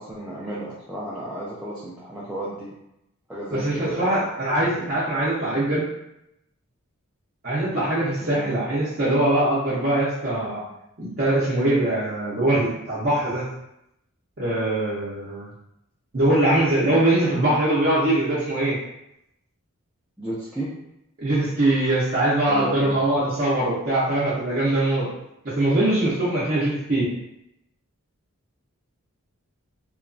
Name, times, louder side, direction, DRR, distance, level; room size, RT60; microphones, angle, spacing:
voice 1, 0.0-2.7 3.3-4.1 8.2-8.5 20.2-20.7 22.5-22.9, right 1 dB, 5° right, -9 dB, 0.3 m, -33 dB
voice 2, 3.5-5.8 7.4-10.6 11.0-13.5 14.4-15.5 16.1-18.8 21.2-25.1 25.4-27.1, right 1 dB, 45° right, -10 dB, 0.6 m, -22 dB
3.0 x 2.3 x 2.5 m, 0.84 s
head